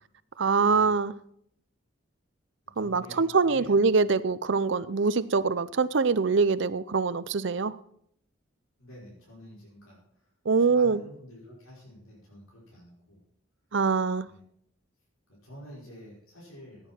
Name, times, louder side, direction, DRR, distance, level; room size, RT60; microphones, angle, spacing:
voice 1, 0.4-1.1 2.8-7.8 10.5-11.0 13.7-14.3, right 4 dB, 60° right, 0.5 m, -24 dB
voice 2, 2.7-3.9 8.8-13.2 14.2-14.4 15.3-16.9, equal, 90° left, 5.3 m, -49 dB
16.0 x 9.1 x 4.4 m
head